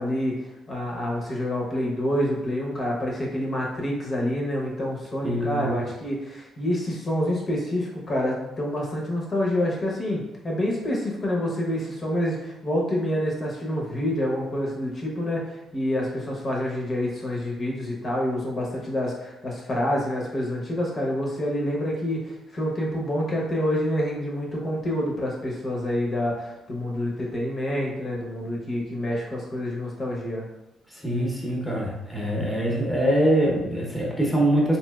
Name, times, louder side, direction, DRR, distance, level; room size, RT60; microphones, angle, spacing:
voice 1, 0.0-30.5, left 1 dB, 40° left, -3 dB, 0.8 m, -27 dB
voice 2, 5.2-5.8 30.9-34.8, right 1 dB, ahead, -4 dB, 0.8 m, -24 dB
3.0 x 2.7 x 2.3 m, 0.93 s
cardioid pair, 90°, 0 cm